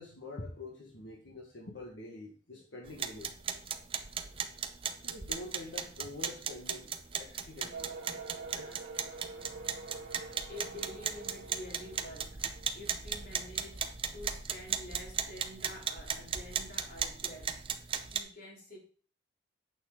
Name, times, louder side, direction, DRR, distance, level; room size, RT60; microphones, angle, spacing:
voice 1, 0.0-3.3 4.9-8.0 8.5-8.8, left 2 dB, 85° left, -1 dB, 1.6 m, -46 dB
sound 1, 2.9-18.2, right 7 dB, 30° right, 0.6 m, -37 dB
sound 2, 7.7-14.4, right 3 dB, 55° right, 1.8 m, -47 dB
voice 2, 9.9-17.6 18.0-18.8, left 1 dB, 50° left, -3 dB, 3.4 m, -48 dB
9.0 x 6.1 x 3.8 m, 0.43 s
head